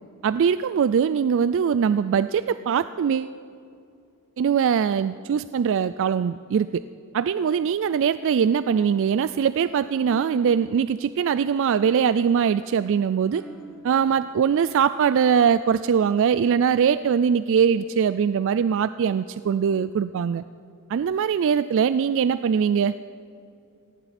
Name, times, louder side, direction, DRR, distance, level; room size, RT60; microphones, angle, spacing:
voice 1, 0.2-3.3 4.4-6.8 7.1-13.4 13.8-20.4 20.9-22.9, right 7 dB, 60° right, 14 dB, 0.3 m, -22 dB
sound 1, 9.6-14.8, right 1 dB, 5° right, 2.1 m, -47 dB
18.5 x 17.0 x 4.2 m, 2.5 s
head